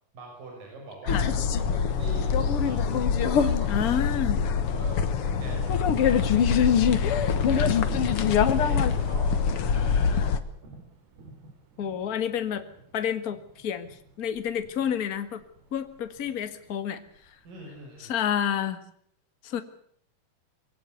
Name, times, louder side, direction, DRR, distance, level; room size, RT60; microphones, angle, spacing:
voice 1, 0.1-4.1 4.7-6.3 7.2-7.8 8.5-9.3 9.5-10.3 17.4-18.1, right 3 dB, 55° right, 0 dB, 7.6 m, -44 dB
sound 1, 1.1-10.4, left 7 dB, 70° left, 1.3 m, -23 dB
voice 2, 3.7-4.4 11.8-12.6 12.9-15.4 15.7-17.0 18.0-18.8 19.4-19.6, left 9 dB, 55° left, 9 dB, 1.0 m, -29 dB
Thunder, 7.2-16.8 17.1-17.8, right 3 dB, 75° right, 5.4 m, -46 dB
23.0 x 17.5 x 8.2 m, 0.65 s
omnidirectional pair, 4.5 m